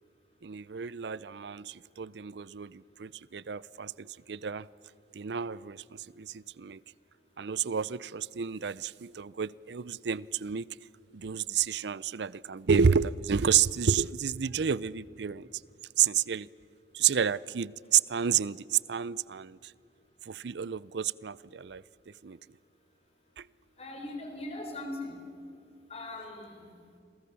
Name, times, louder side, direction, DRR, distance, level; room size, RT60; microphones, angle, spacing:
voice 1, 0.4-4.7 5.1-6.8 7.4-10.7 11.1-15.5 16.0-16.5 16.9-19.6 20.3-21.8 22.2-22.4 23.4-23.5, right 7 dB, 75° right, 0.5 m, -30 dB
voice 2, 23.8-25.1 25.9-26.7, left 2 dB, 35° left, 4.2 m, -40 dB
30.0 x 23.0 x 6.9 m
head